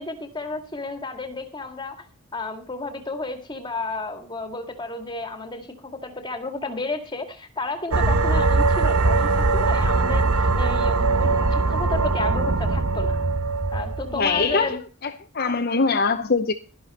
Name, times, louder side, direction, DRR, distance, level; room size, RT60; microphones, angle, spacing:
voice 1, 0.0-2.1 2.3-13.2 13.7-14.8, left 3 dB, 20° left, 2.0 m, -32 dB
sound 1, 7.9-14.5, right 3 dB, 85° right, 1.1 m, -21 dB
voice 2, 14.1-15.1 15.3-16.5, left 4 dB, 45° left, 0.8 m, -22 dB
12.5 x 11.0 x 4.2 m
head